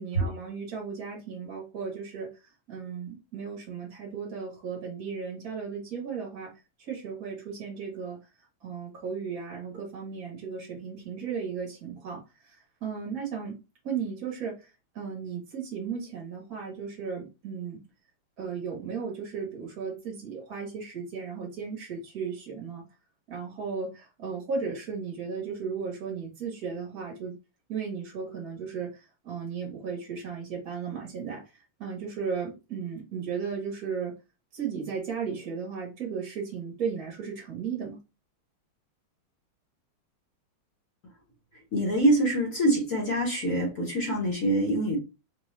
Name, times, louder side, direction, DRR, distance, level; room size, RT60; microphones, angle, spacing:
voice 1, 0.0-2.4 2.7-6.5 6.8-8.2 8.6-13.6 13.8-17.8 18.4-22.8 23.3-27.4 27.7-34.1 34.5-38.0, right 6 dB, 50° right, 1.3 m, -35 dB
voice 2, 41.7-45.0, right 1 dB, 50° left, 1.2 m, -25 dB
4.8 x 2.2 x 3.1 m
omnidirectional pair, 2.3 m